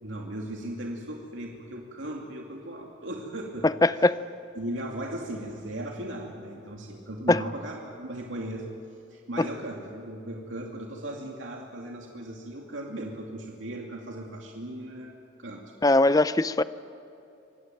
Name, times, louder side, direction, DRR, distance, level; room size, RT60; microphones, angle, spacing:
voice 1, 0.0-4.0 4.6-8.6 9.1-15.1 15.4-15.6, right 1 dB, 85° right, 0 dB, 2.4 m, -37 dB
voice 2, 3.8-4.2 7.3-7.4 9.4-9.5 15.8-16.6, left 2 dB, 20° left, 14 dB, 0.5 m, -20 dB
25.0 x 18.0 x 9.2 m, 2.7 s
head